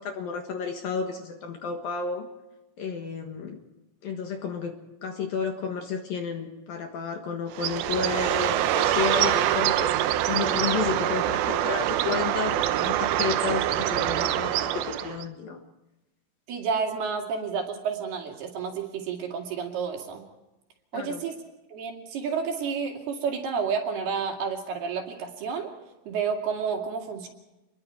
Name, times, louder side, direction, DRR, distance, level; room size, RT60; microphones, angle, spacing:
voice 1, 0.0-2.3 2.8-3.6 4.0-15.6 20.9-21.2, left 6 dB, 60° left, 3 dB, 2.7 m, -32 dB
Bird, 7.5-15.2, right 12 dB, 90° right, 2.1 m, -25 dB
voice 2, 16.5-20.2 20.9-21.4 21.7-25.7 26.1-27.3, right 6 dB, 60° right, 2 dB, 4.1 m, -30 dB
28.5 x 22.0 x 4.7 m, 1.0 s
omnidirectional pair, 5.5 m